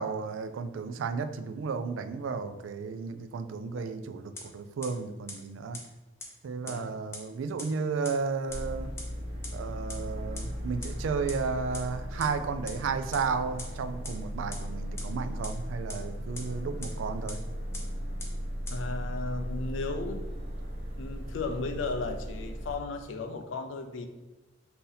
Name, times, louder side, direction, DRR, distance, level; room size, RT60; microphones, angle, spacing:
voice 1, 0.0-5.8 6.4-8.9 9.5-17.4, right 5 dB, 70° right, 10 dB, 0.3 m, -33 dB
sound 1, 4.4-4.5 4.8-4.9 5.3-5.4 5.7-5.8 6.2-6.3 6.7-6.8 7.1-7.2 7.6-7.7 8.0-8.1 8.5-8.6 9.0-9.1 9.4-9.5 9.9-10.0 10.4-10.5 10.8-10.9 11.3-11.4 11.7-11.8 12.2-12.3 12.7-12.8 13.1-13.2 13.6-13.7 14.0-14.1 14.5-14.6 15.0-15.1 15.4-15.5 15.9-16.0 16.4-16.5 16.8-16.9 17.3-17.4 17.7-17.8 18.2-18.3 18.7-18.8, left 3 dB, 15° left, 0.7 m, -39 dB
sound 2, 8.5-22.7, equal, 30° right, 1.0 m, -37 dB
voice 2, 18.7-20.3 21.0-24.1, left 3 dB, 70° left, 8 dB, 0.4 m, -35 dB
3.9 x 2.8 x 3.9 m, 1.1 s
head